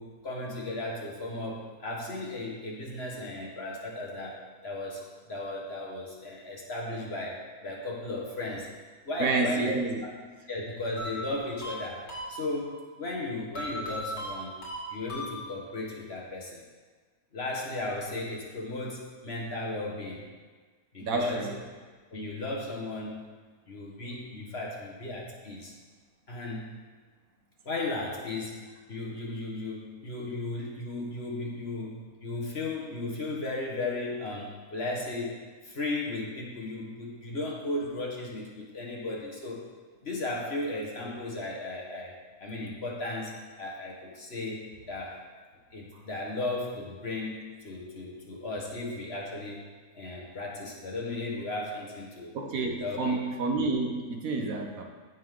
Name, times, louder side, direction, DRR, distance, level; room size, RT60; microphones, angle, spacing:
voice 1, 0.0-5.0 5.3-8.7 9.0-9.7 10.0-10.2 10.5-14.5 14.9-16.6 17.3-20.3 20.9-21.5 22.1-23.2 23.7-25.7 26.3-26.8 27.6-28.6 28.9-35.3 35.6-39.6 40.0-42.1 42.4-43.3 43.6-44.6 44.9-45.2 45.7-49.6 49.9-52.3 52.6-53.2, left 2 dB, 45° left, -3 dB, 1.7 m, -35 dB
voice 2, 9.2-10.0 21.0-21.6 52.3-54.8, right 3 dB, 65° right, 3 dB, 1.4 m, -29 dB
sound 1, 11.0-12.8 13.5-15.8, right 1 dB, 85° left, 2.6 m, -38 dB
15.5 x 5.4 x 3.8 m, 1.4 s
omnidirectional pair, 1.6 m